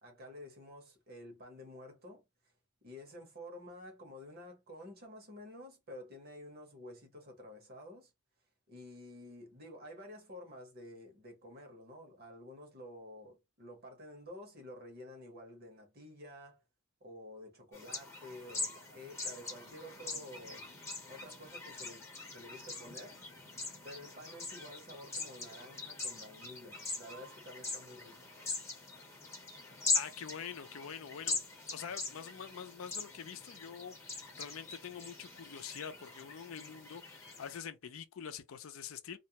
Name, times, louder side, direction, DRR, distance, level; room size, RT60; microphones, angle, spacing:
voice 1, 0.0-2.2 2.8-8.1 8.7-16.6 17.0-20.7 21.1-23.2 23.8-28.2, left 1 dB, 45° right, 0.9 m, -50 dB
sound 1, 17.7-37.6, left 3 dB, 10° left, 0.7 m, -42 dB
voice 2, 29.9-31.5 31.7-39.2, left 7 dB, 65° left, 0.4 m, -45 dB
2.4 x 2.1 x 2.8 m
head